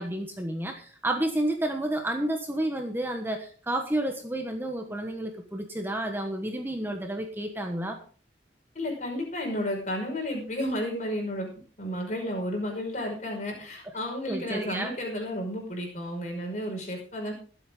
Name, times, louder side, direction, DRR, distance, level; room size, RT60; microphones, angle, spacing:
voice 1, 0.0-8.0 14.3-14.9, right 1 dB, 10° right, 4 dB, 1.2 m, -30 dB
voice 2, 8.7-11.5 11.8-17.3, equal, 40° left, 1 dB, 5.5 m, -32 dB
22.0 x 8.2 x 3.8 m, 0.40 s
head